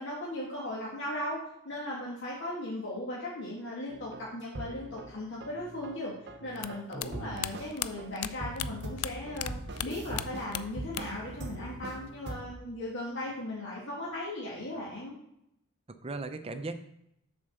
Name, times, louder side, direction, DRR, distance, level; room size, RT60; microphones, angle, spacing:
voice 1, 0.0-1.4 1.7-6.1 6.4-9.5 9.8-15.1, left 1 dB, 55° left, -6 dB, 1.8 m, -37 dB
sound 1, 3.9-5.2 5.4-6.9 7.1-12.5, right 1 dB, 50° right, 0.8 m, -42 dB
sound 2, 6.6-9.5 9.8-11.3 11.5-12.3, left 13 dB, 80° left, 0.4 m, -37 dB
voice 2, 6.9-7.6 16.0-16.7, right 3 dB, 25° right, 9 dB, 0.6 m, -38 dB
7.3 x 4.4 x 6.6 m, 0.79 s
head